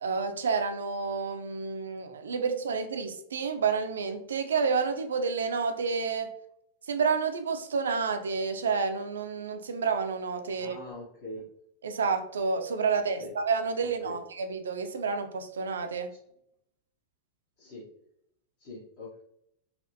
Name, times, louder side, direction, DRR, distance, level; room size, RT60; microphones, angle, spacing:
voice 1, 0.0-6.4 6.9-10.8 11.8-16.1, right 5 dB, 65° right, 0.4 m, -29 dB
voice 2, 10.6-11.5 13.2-13.3 14.0-14.2 17.6-17.9 18.6-19.2, left 1 dB, 50° left, 1.1 m, -42 dB
4.1 x 2.4 x 2.7 m
figure-of-eight pair, 90°, 0 cm